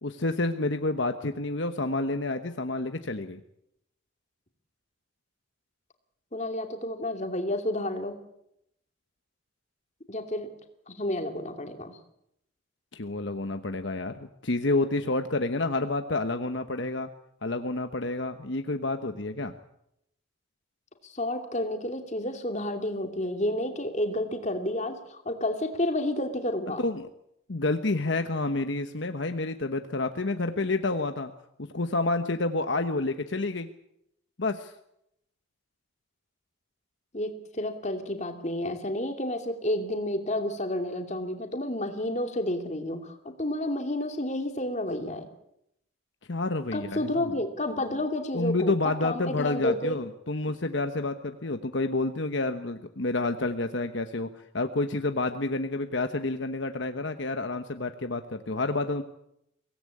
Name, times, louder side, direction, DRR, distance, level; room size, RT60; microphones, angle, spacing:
voice 1, 0.0-3.4 12.9-17.1 17.4-19.5 26.8-27.1 27.5-31.3 31.7-33.7 34.4-34.7 46.3-47.2 48.3-54.3 54.5-59.0, left 2 dB, 65° left, 7 dB, 1.1 m, -29 dB
voice 2, 6.3-8.2 10.1-10.6 10.9-12.0 21.0-26.8 37.1-45.3 46.7-50.0, left 1 dB, 35° left, 5 dB, 2.6 m, -30 dB
23.5 x 17.5 x 8.6 m, 0.80 s
head